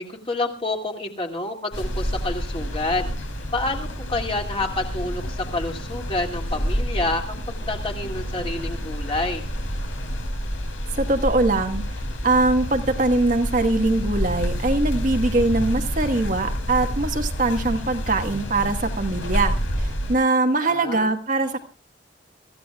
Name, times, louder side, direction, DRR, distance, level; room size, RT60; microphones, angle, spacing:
voice 1, 0.0-3.1 3.5-9.5 20.6-21.1, left 2 dB, 30° left, 2 dB, 2.4 m, -28 dB
sound 1, 1.7-20.2, equal, 80° left, 4.9 m, -28 dB
voice 2, 10.9-11.8 12.2-21.6, right 2 dB, 40° right, 5 dB, 1.4 m, -22 dB
24.5 x 15.0 x 2.3 m, 0.36 s
head